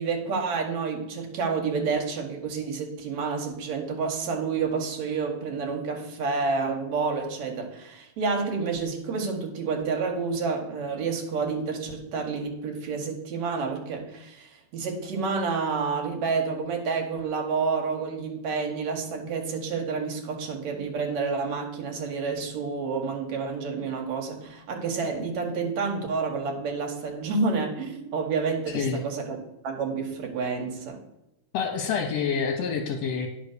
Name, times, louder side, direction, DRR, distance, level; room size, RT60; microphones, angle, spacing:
voice 1, 0.0-29.4 29.6-31.0, right 4 dB, 70° right, 2 dB, 2.8 m, -29 dB
voice 2, 31.5-33.3, left 6 dB, 70° left, 3 dB, 2.0 m, -27 dB
10.5 x 5.2 x 6.7 m, 0.89 s
omnidirectional pair, 3.4 m